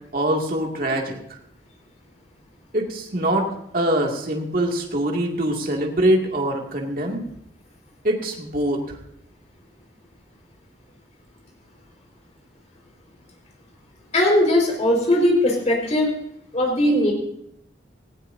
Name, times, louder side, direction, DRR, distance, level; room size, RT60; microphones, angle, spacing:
voice 1, 0.1-1.4 2.7-3.5 3.7-7.2 8.0-9.0, right 1 dB, 55° right, 0 dB, 2.3 m, -23 dB
voice 2, 14.1-16.1 16.5-17.1, left 1 dB, 40° left, 0 dB, 4.8 m, -19 dB
18.5 x 16.0 x 2.7 m, 0.74 s
head